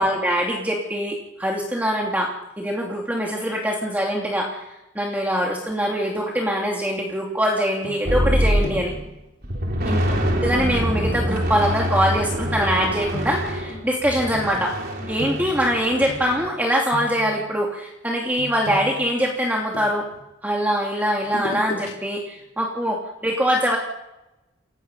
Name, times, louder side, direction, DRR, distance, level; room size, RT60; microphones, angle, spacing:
voice 1, 0.0-4.7 4.9-8.9 9.9-10.0 10.4-14.8 15.1-20.1 20.4-23.8, equal, 10° right, -2 dB, 2.8 m, -23 dB
sound 1, 7.8-8.3 8.6-9.1 10.5-10.7 12.4-16.6 16.9-17.4 18.4-20.2 21.2-21.9 22.3-22.4, equal, 75° left, 4.9 m, -36 dB
sound 2, 8.1-9.1 9.4-16.5, equal, 50° right, 3.9 m, -25 dB
28.5 x 17.0 x 5.5 m, 0.94 s
head